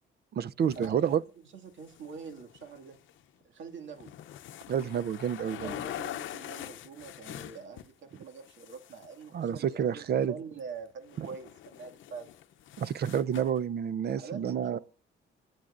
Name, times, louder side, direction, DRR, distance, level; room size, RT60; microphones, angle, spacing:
voice 1, 0.3-1.2 4.7-5.7 9.3-10.3 11.2-11.3 12.8-14.8, right 8 dB, 55° right, 0.6 m, -29 dB
sound 1, 0.6-1.1 1.7-3.2 3.7-7.9 8.2-9.7 10.6-10.7 11.0-13.6, left 12 dB, 75° left, 0.7 m, -44 dB
voice 2, 1.4-3.0 3.4-4.1 5.4-12.3 14.2-14.8, right 5 dB, 70° right, 2.2 m, -45 dB
27.5 x 9.4 x 2.5 m
cardioid pair, 90°, 20 cm